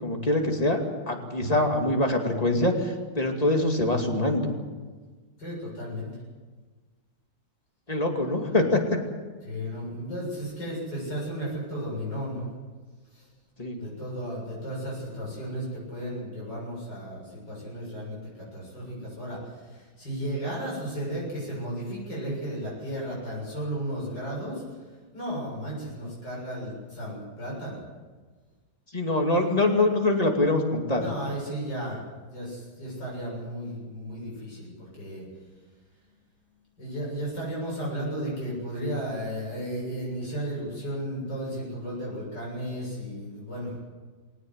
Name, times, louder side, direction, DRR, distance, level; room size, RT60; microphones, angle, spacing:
voice 1, 0.0-0.8 1.1-4.5 7.9-8.8 13.6-13.8 28.9-31.0, left 2 dB, 20° left, 2 dB, 2.5 m, -24 dB
voice 2, 5.4-6.1 9.5-12.5 13.1-13.3 13.8-24.8 25.1-27.8 31.0-35.3 36.8-43.7, equal, 65° left, -5 dB, 8.1 m, -34 dB
21.0 x 18.5 x 8.2 m, 1.4 s
omnidirectional pair, 2.0 m